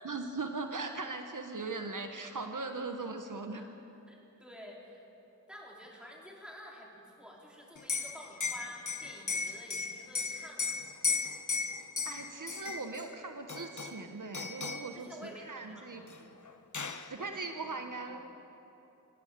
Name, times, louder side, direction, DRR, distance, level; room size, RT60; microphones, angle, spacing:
voice 1, 0.0-3.7 12.0-16.0 17.1-18.3, right 3 dB, 70° right, 5 dB, 1.3 m, -39 dB
voice 2, 4.1-5.0 5.5-10.8 14.9-16.1 17.1-18.1, equal, 5° right, -3 dB, 4.5 m, -50 dB
Liquid, 7.8-13.1 13.5-14.1 14.3-14.9 16.1-16.2 16.5-17.1, left 5 dB, 65° left, 1.1 m, -35 dB
26.0 x 16.0 x 6.8 m, 2.9 s
wide cardioid pair, 65°, 32 cm